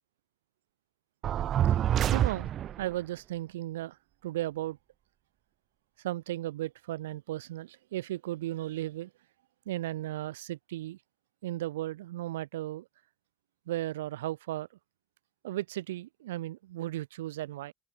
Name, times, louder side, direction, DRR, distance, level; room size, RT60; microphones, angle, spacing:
sound 1, 1.2-2.9, right 11 dB, 45° right, 2.5 m, -27 dB
voice 1, 2.1-2.5 2.8-4.0 4.2-4.8 6.0-9.1 9.7-11.0 11.4-12.8 13.7-14.7 15.4-17.7, right 15 dB, 75° right, 4.1 m, -35 dB
open air
figure-of-eight pair, 70°, 0 cm